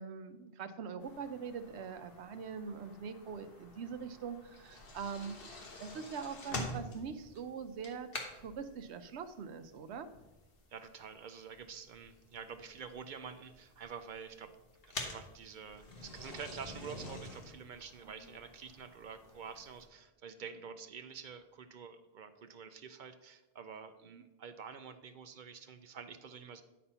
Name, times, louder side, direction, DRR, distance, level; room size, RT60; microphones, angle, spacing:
voice 1, 0.0-8.1 8.4-10.1 18.0-18.3 24.1-24.2, right 6 dB, 85° right, 11 dB, 0.9 m, -43 dB
sound 1, 1.0-19.8, left 1 dB, 60° left, 1.4 m, -48 dB
voice 2, 10.7-14.5 15.0-26.6, right 6 dB, 55° right, 10 dB, 0.6 m, -48 dB
9.5 x 4.2 x 5.5 m, 1.1 s
omnidirectional pair, 1.1 m